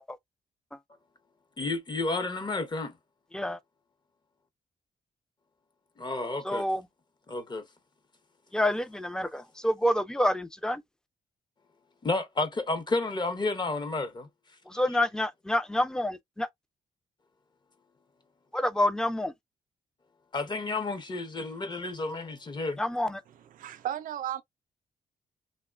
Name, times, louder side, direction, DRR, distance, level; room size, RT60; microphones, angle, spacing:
voice 1, 1.6-3.0 6.0-6.7 7.3-7.6 12.0-14.3 20.3-22.8, left 3 dB, 30° left, 0.7 m, -31 dB
voice 2, 6.4-6.9 8.5-10.8 14.7-16.5 18.5-19.3 22.8-23.2, left 1 dB, 5° left, 0.4 m, -28 dB
voice 3, 23.6-24.4, right 11 dB, 65° right, 0.4 m, -34 dB
3.0 x 2.1 x 2.3 m
cardioid pair, 80°, 15 cm